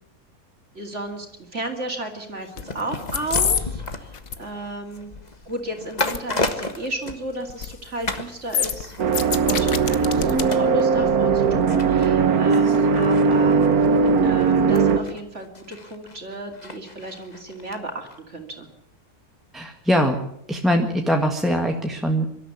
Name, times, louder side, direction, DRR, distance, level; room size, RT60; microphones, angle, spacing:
voice 1, 0.7-5.1 5.5-13.6 14.2-18.7, right 1 dB, 50° right, 3 dB, 3.0 m, -33 dB
sound 1, 2.6-2.8 3.1-3.6 3.9-4.3 6.0-6.2 6.4-6.5 7.5-7.7 8.0-8.2 8.5-10.4 10.8-10.9, left 8 dB, 65° left, 1.5 m, -25 dB
sound 2, 2.6-7.7 8.1-8.3 8.7-17.8 18.1-18.2, left 2 dB, 30° left, 1.7 m, -34 dB
sound 3, 9.0-15.0, right 5 dB, 75° right, 1.7 m, -19 dB
voice 2, 19.5-20.2 20.5-22.3, equal, ahead, 2 dB, 1.6 m, -22 dB
24.5 x 13.0 x 9.5 m, 0.74 s
omnidirectional pair, 1.6 m